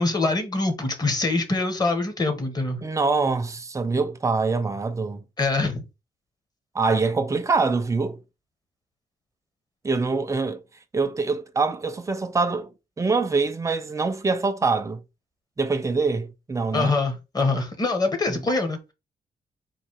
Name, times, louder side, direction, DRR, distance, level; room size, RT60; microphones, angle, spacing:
voice 1, 0.0-2.8 5.4-5.8 16.7-18.8, left 3 dB, 25° left, 1.1 m, -24 dB
voice 2, 2.8-5.2 6.7-8.2 9.8-10.6 10.9-12.7 13.0-15.0 15.6-16.9 18.3-18.4, right 4 dB, 20° right, 0.5 m, -24 dB
4.0 x 2.6 x 4.6 m
wide cardioid pair, 150°, 16 cm